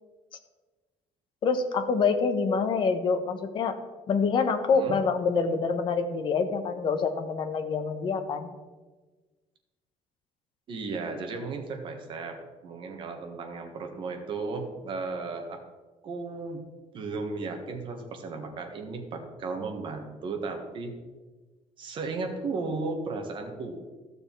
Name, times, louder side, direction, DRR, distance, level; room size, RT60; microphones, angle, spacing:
voice 1, 1.4-3.8 4.1-8.5, left 5 dB, 40° left, 7 dB, 1.0 m, -26 dB
voice 2, 10.7-12.4 12.6-15.6 16.0-16.6 16.9-20.9 21.8-23.8, right 3 dB, 40° right, 3 dB, 1.5 m, -35 dB
14.0 x 6.6 x 4.6 m, 1.3 s
cardioid pair, 180°, 12 cm